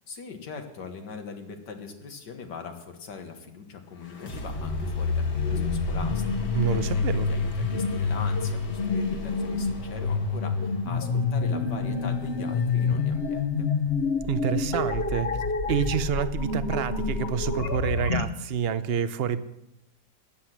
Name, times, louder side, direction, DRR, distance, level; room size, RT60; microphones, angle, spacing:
voice 1, 0.1-13.7, left 5 dB, 90° left, 5 dB, 2.1 m, -41 dB
sound 1, 4.0-13.7, equal, 75° left, 2.2 m, -39 dB
sound 2, 4.5-18.3, left 4 dB, 45° left, 1.0 m, -27 dB
voice 2, 6.5-7.3 14.2-15.3 15.7-19.4, right 8 dB, 70° right, 13 dB, 0.5 m, -28 dB
14.5 x 10.0 x 6.0 m, 0.85 s
omnidirectional pair, 1.8 m